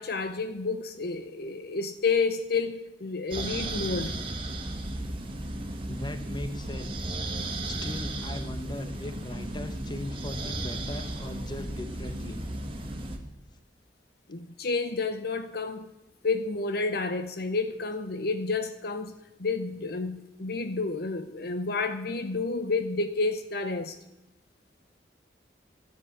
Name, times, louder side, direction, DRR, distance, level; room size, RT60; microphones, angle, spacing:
voice 1, 0.0-4.2 14.3-15.9 16.2-19.1 19.4-24.0, left 4 dB, 60° left, 0.8 m, -30 dB
sound 1, 3.3-13.2, right 1 dB, 30° right, 1.9 m, -35 dB
voice 2, 5.8-7.2 7.4-12.4 12.8-13.1, left 1 dB, 25° left, 1.4 m, -39 dB
13.5 x 9.8 x 8.7 m
head